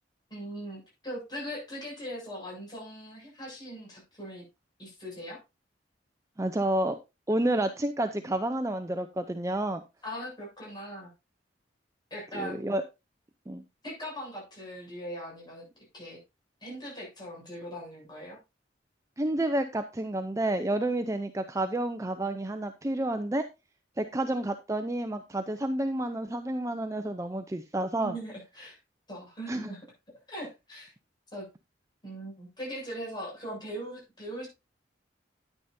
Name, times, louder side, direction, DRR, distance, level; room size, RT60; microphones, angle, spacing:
voice 1, 0.3-4.4 4.8-5.4 10.0-11.1 12.1-12.7 13.8-15.7 15.9-16.2 16.6-18.4 28.0-28.8 29.1-29.8 30.3-30.9 31.3-31.5 32.0-34.5, equal, 25° left, -2 dB, 7.3 m, -40 dB
voice 2, 6.4-7.0 7.3-9.8 12.3-12.8 13.5-13.6 19.2-23.4 24.0-28.1 29.5-29.7, right 1 dB, 15° right, 8 dB, 0.5 m, -30 dB
10.0 x 9.8 x 2.7 m, 0.25 s
head